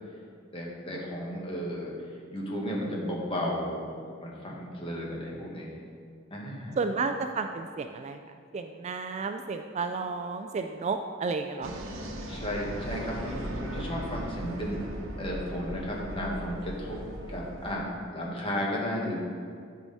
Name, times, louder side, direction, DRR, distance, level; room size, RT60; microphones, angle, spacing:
voice 1, 0.5-1.9 2.3-5.8 6.3-6.8 12.3-14.9 15.2-17.0 17.3-19.2, equal, 25° left, -3 dB, 1.6 m, -34 dB
voice 2, 6.8-8.2 8.5-11.8, right 4 dB, 35° right, 7 dB, 0.3 m, -32 dB
sound 1, 11.6-17.7, right 1 dB, 75° right, 1.0 m, -38 dB
12.0 x 4.8 x 4.1 m, 2.2 s
head